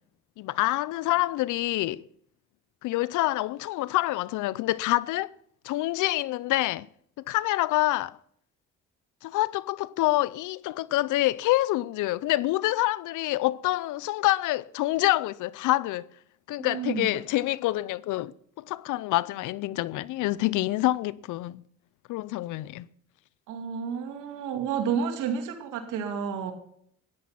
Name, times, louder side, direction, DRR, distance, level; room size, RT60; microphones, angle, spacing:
voice 1, 0.4-2.0 2.8-5.3 5.6-6.9 7.2-8.2 9.2-16.1 16.5-18.3 18.6-21.6 22.1-22.9, left 17 dB, 75° left, 0.6 m, -26 dB
voice 2, 16.6-17.1 23.5-26.5, right 7 dB, 85° right, 2.4 m, -30 dB
14.0 x 10.5 x 5.8 m
cardioid pair, 80°, 31 cm